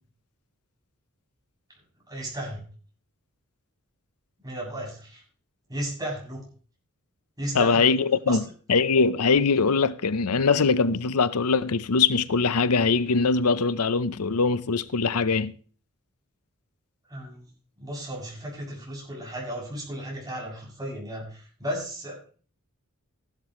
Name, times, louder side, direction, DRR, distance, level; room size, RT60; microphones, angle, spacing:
voice 1, 2.1-2.6 4.4-5.2 5.7-6.4 7.4-7.9 8.3-8.4 17.1-17.5 17.8-22.2, right 1 dB, 15° right, 7.4 m, -34 dB
voice 2, 7.5-8.4 8.7-15.5, left 4 dB, 90° left, 0.7 m, -22 dB
15.5 x 12.0 x 3.1 m
head